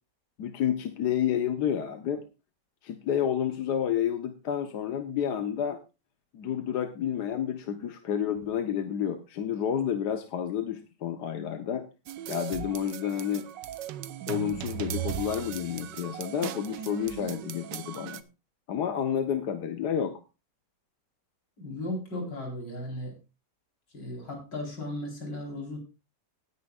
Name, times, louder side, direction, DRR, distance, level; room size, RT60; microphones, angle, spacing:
voice 1, 0.4-2.2 2.8-5.8 6.3-11.9 12.3-13.5 14.3-18.2 18.7-20.2, left 9 dB, 70° left, 7 dB, 1.5 m, -30 dB
sound 1, 12.1-18.2, right 11 dB, 85° right, 1.4 m, -38 dB
voice 2, 21.6-23.1 23.9-25.8, left 1 dB, 85° left, 0 dB, 4.9 m, -36 dB
18.0 x 9.8 x 2.4 m, 0.29 s
omnidirectional pair, 1.9 m